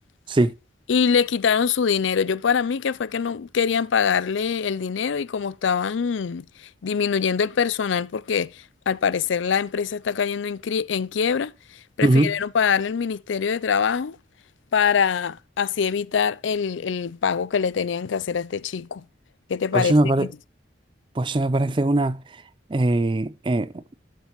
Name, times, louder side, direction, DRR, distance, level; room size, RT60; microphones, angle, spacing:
voice 1, 0.9-11.5 12.0-14.2 14.7-19.0 19.5-20.3, left 6 dB, 80° left, 0.4 m, -24 dB
voice 2, 12.0-12.3 19.7-20.3 21.2-22.2 22.7-23.8, right 2 dB, 25° right, 0.4 m, -21 dB
11.5 x 6.9 x 3.0 m
head